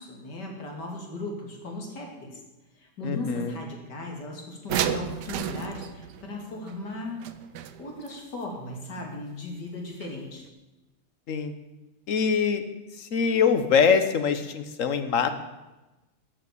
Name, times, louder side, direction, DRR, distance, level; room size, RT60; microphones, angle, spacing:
voice 1, 0.0-2.4 2.8-7.3 7.8-10.4, left 2 dB, 80° left, 1 dB, 3.2 m, -37 dB
voice 2, 3.0-3.5 11.3-11.5 12.1-12.6 13.0-15.3, left 6 dB, 55° left, 9 dB, 1.4 m, -23 dB
sound 1, 4.7-8.1 10.0-10.1 10.4-10.5, right 10 dB, 80° right, 1.4 m, -32 dB
13.5 x 7.6 x 8.6 m, 1.1 s
omnidirectional pair, 1.8 m